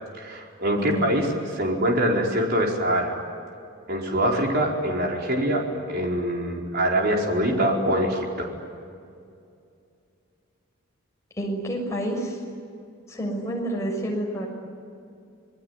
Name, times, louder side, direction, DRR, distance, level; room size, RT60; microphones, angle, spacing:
voice 1, 0.2-1.3 1.5-3.2 3.9-8.5, right 1 dB, 45° right, 0 dB, 4.7 m, -24 dB
voice 2, 0.8-1.1 11.4-12.4 13.1-14.5, right 1 dB, 15° left, -1 dB, 6.4 m, -28 dB
27.5 x 20.5 x 9.8 m, 2.4 s
head